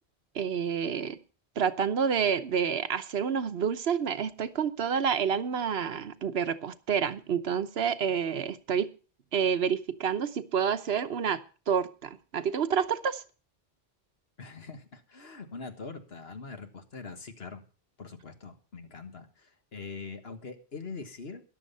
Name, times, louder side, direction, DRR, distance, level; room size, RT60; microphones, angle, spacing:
voice 1, 0.3-1.2 1.6-8.9 9.3-13.2, right 7 dB, 70° right, 1.1 m, -29 dB
voice 2, 14.4-17.6 18.0-21.4, left 4 dB, 70° left, 1.8 m, -43 dB
14.0 x 11.0 x 5.5 m
omnidirectional pair, 1.1 m